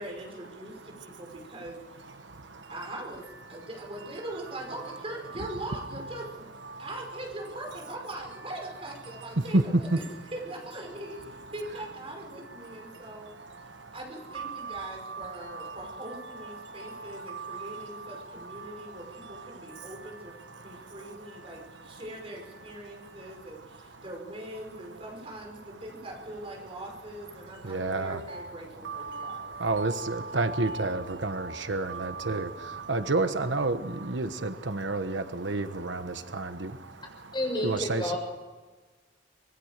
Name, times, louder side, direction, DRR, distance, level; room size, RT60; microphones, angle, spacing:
voice 1, 0.0-2.1 2.7-6.5 6.8-9.9 10.3-13.3 13.9-20.4 20.6-29.6, right 1 dB, 30° right, 0 dB, 5.9 m, -41 dB
voice 2, 14.3-15.3 17.3-17.6 27.7-28.2 28.8-32.5 32.9-36.7 37.6-38.2, right 2 dB, 85° right, 9 dB, 1.3 m, -30 dB
voice 3, 37.3-38.2, left 1 dB, 25° left, 1 dB, 6.5 m, -30 dB
25.0 x 21.0 x 6.8 m, 1.3 s
head